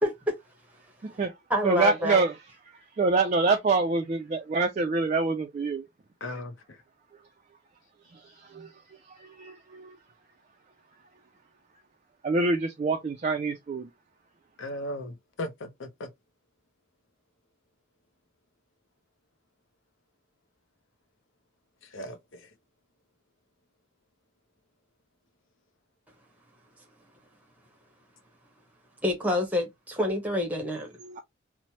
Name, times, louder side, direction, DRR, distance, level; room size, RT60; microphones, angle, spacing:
voice 1, 0.0-0.3 1.5-2.2 29.0-30.9, left 1 dB, 5° right, 0.8 m, -27 dB
voice 2, 1.0-1.3 1.6-2.4 2.7-5.9 8.0-10.0 12.2-13.9 31.0-31.2, right 3 dB, 35° right, 0.3 m, -26 dB
voice 3, 6.2-6.8 14.6-16.1 21.9-22.4, left 1 dB, 65° left, 0.6 m, -37 dB
3.0 x 2.0 x 2.8 m
head